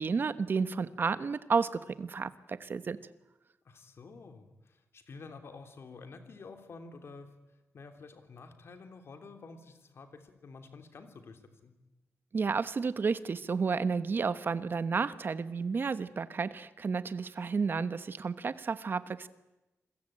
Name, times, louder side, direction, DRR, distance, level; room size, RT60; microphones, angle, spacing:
voice 1, 0.0-3.0 12.3-19.3, right 5 dB, 45° right, 13 dB, 1.2 m, -31 dB
voice 2, 3.6-7.3 7.7-11.7, left 4 dB, 55° left, 7 dB, 3.2 m, -50 dB
28.5 x 22.0 x 8.9 m, 0.99 s
wide cardioid pair, 155°, 5 cm